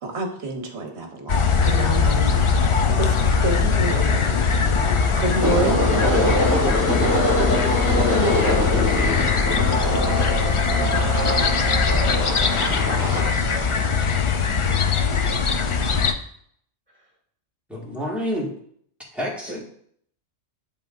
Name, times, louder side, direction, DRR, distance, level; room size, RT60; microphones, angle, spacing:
voice 1, 0.0-3.1 3.4-4.8 5.2-6.6, right 2 dB, 65° right, 3 dB, 1.2 m, -28 dB
sound 1, 1.3-16.1, left 5 dB, 55° left, 0.3 m, -21 dB
sound 2, 5.4-13.3, left 1 dB, 15° left, 1.7 m, -24 dB
voice 2, 12.6-13.7 16.9-17.1 19.4-19.6, right 1 dB, 40° right, -5 dB, 1.7 m, -45 dB
voice 3, 17.7-18.5 19.1-19.6, equal, ahead, -5 dB, 1.7 m, -28 dB
11.0 x 3.6 x 2.5 m, 0.65 s
omnidirectional pair, 1.2 m